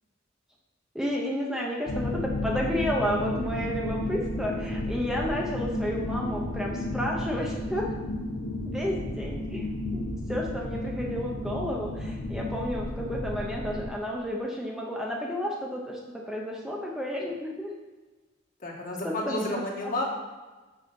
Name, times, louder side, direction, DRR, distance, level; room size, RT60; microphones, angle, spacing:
voice 1, 0.9-7.9 8.7-9.7 9.9-17.7 19.0-19.9, equal, ahead, -2 dB, 0.8 m, -32 dB
sound 1, 1.9-13.9, left 1 dB, 65° left, 1.1 m, -32 dB
voice 2, 18.6-20.0, left 1 dB, 45° left, -2 dB, 1.6 m, -31 dB
6.4 x 5.0 x 6.9 m, 1.3 s
head